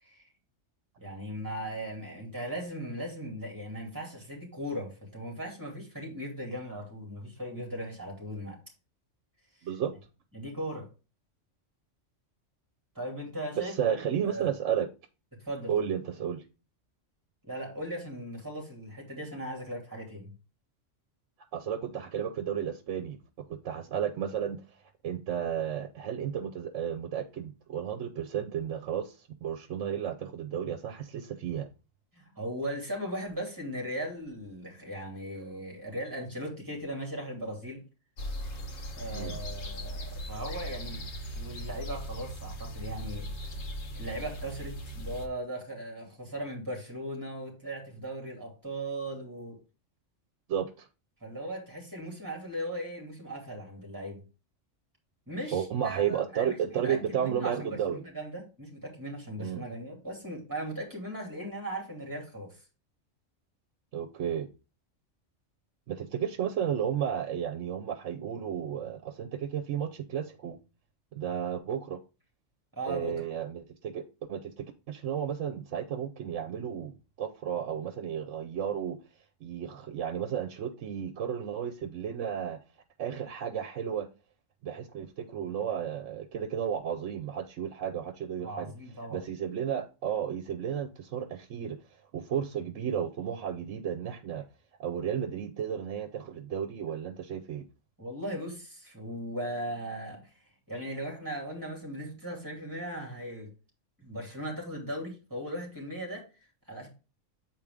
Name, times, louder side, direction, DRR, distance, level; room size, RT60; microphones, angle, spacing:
voice 1, 1.0-8.6 10.3-10.9 12.9-14.0 14.2-14.5 15.4-15.9 17.4-20.3 32.2-37.8 39.0-41.1 41.3-43.3 44.0-49.6 51.2-54.2 55.3-62.6 72.7-73.2 88.4-89.2 98.0-100.3 100.7-103.5 104.0-106.2 106.7-106.9, right 1 dB, 15° right, 2.7 m, -38 dB
voice 2, 9.6-9.9 13.6-14.9 15.7-16.4 21.5-23.2 23.5-24.6 25.0-31.7 39.1-39.4 50.5-50.9 55.5-58.0 59.4-59.6 63.9-64.5 65.9-70.6 71.1-72.0 72.9-74.0 74.3-79.0 79.4-82.6 83.0-84.1 84.6-88.7 89.1-91.8 92.1-94.4 94.8-97.7, right 8 dB, 75° right, 1.0 m, -33 dB
sound 1, 38.2-45.3, equal, 85° left, 1.5 m, -38 dB
7.5 x 4.6 x 3.6 m
omnidirectional pair, 1.3 m